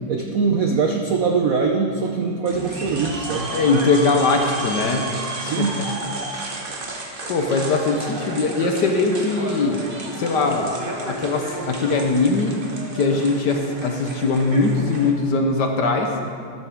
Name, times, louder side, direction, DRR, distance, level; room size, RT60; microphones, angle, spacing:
voice 1, 0.1-3.5 5.4-5.8 7.2-7.3, right 5 dB, 75° right, 2 dB, 0.7 m, -22 dB
sound 1, 2.4-15.1, right 2 dB, 35° right, 1.0 m, -32 dB
voice 2, 3.5-5.8 6.3-6.5 7.3-9.8 10.1-12.5 12.9-16.1, left 3 dB, 60° left, 3 dB, 1.3 m, -21 dB
13.0 x 12.5 x 3.6 m, 2.1 s
omnidirectional pair, 2.4 m